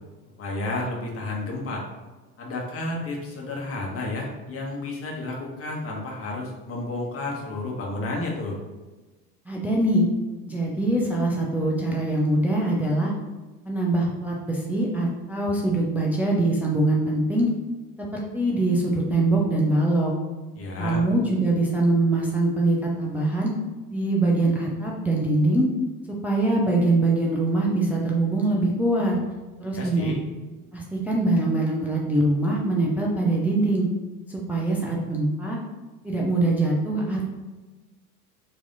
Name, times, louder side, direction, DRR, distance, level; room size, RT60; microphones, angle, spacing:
voice 1, 0.4-1.8 2.4-8.6 20.6-21.0 29.7-30.2, left 2 dB, 30° left, -1 dB, 1.2 m, -31 dB
voice 2, 9.5-10.0 10.4-13.1 13.6-17.5 18.0-20.1 20.8-23.5 23.9-25.7 26.2-29.2 29.6-30.1 30.7-33.9 34.3-35.6 36.0-37.2, right 2 dB, 5° right, -3 dB, 0.4 m, -23 dB
4.4 x 2.8 x 3.9 m, 1.2 s
figure-of-eight pair, 70°, 46 cm